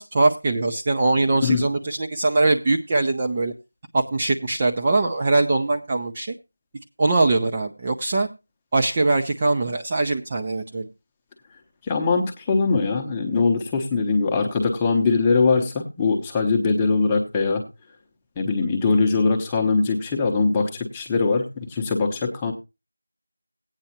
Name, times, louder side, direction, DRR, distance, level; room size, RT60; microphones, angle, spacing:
voice 1, 0.0-3.5 3.9-6.3 7.0-8.3 8.7-10.9, right 2 dB, 20° right, 1 dB, 0.6 m, -22 dB
voice 2, 11.9-17.6 18.4-22.5, left 4 dB, 10° left, 1 dB, 0.9 m, -21 dB
16.0 x 9.0 x 2.8 m, 0.26 s
figure-of-eight pair, 175°, 0 cm